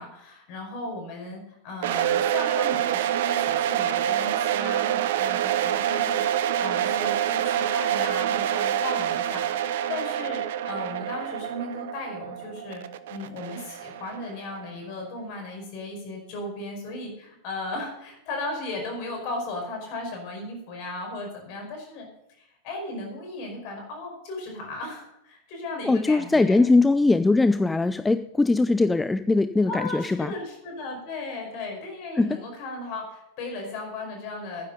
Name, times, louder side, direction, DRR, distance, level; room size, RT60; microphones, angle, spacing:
voice 1, 0.0-6.2 6.6-12.8 13.1-22.1 22.4-26.6 29.6-34.7, left 2 dB, 45° left, 2 dB, 5.0 m, -36 dB
sound 1, 1.8-14.7, right 11 dB, 55° right, 0.7 m, -26 dB
voice 2, 25.8-30.3 32.1-32.4, left 3 dB, 10° left, 12 dB, 0.4 m, -21 dB
11.5 x 9.9 x 5.6 m, 0.85 s
figure-of-eight pair, 90°, 0 cm